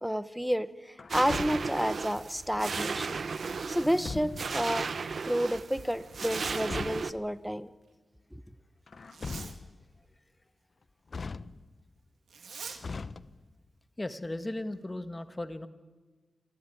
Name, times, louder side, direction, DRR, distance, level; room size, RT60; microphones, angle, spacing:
voice 1, 0.0-3.2 3.7-4.9 5.2-7.7 8.3-8.4, equal, ahead, 14 dB, 1.0 m, -30 dB
Truck, 1.0-1.9 3.8-4.6 6.3-7.3 8.9-9.9 11.1-11.9 12.8-13.7, left 4 dB, 50° left, 0.7 m, -41 dB
sound 1, 1.1-7.1, right 4 dB, 60° right, 0.8 m, -35 dB
Zipper (clothing), 3.0-4.1 6.1-6.7 9.0-9.6 12.3-12.8, right 5 dB, 80° right, 2.6 m, -46 dB
voice 2, 14.0-15.7, left 1 dB, 20° left, 10 dB, 1.4 m, -36 dB
27.5 x 14.5 x 9.9 m, 1.4 s
cardioid pair, 80°, 0 cm